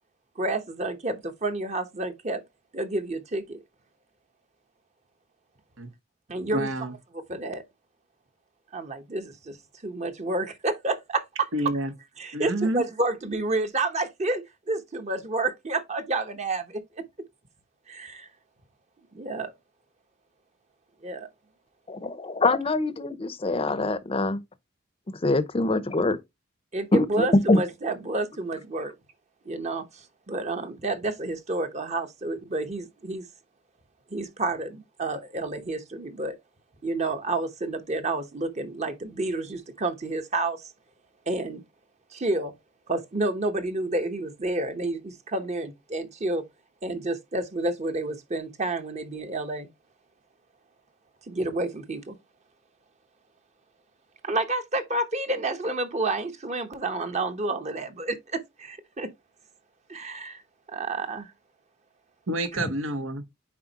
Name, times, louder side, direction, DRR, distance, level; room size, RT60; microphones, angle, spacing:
voice 1, 0.4-2.4 2.7-3.6 6.3-6.7 7.1-7.6 8.7-9.6 9.8-11.5 12.2-17.0 17.9-18.3 19.1-19.5 21.0-21.3 26.7-28.9 29.4-33.2 34.1-36.3 36.8-40.7 41.3-41.6 42.1-42.5 42.9-46.4 46.8-49.7 51.3-52.2 54.2-59.1 59.9-60.4 60.7-61.3, right 2 dB, 35° right, 1.0 m, -30 dB
voice 2, 6.5-6.9 11.5-11.9 12.3-12.8 62.3-63.2, right 1 dB, 85° right, 1.2 m, -28 dB
voice 3, 21.9-24.4 25.2-26.2 26.9-27.6 62.6-62.7, left 2 dB, 30° left, 0.7 m, -24 dB
9.5 x 4.3 x 2.9 m
head